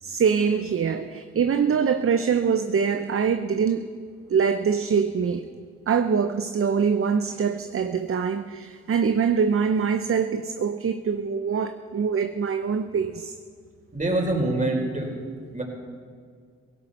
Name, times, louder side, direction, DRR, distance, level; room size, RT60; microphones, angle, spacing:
voice 1, 0.0-3.9 4.3-5.5 5.9-13.3, right 6 dB, 40° right, 9 dB, 0.8 m, -24 dB
voice 2, 13.9-15.1 15.5-15.6, right 2 dB, 20° right, 1 dB, 4.5 m, -25 dB
17.5 x 16.5 x 4.3 m, 2.1 s
hypercardioid pair, 40°, 33 cm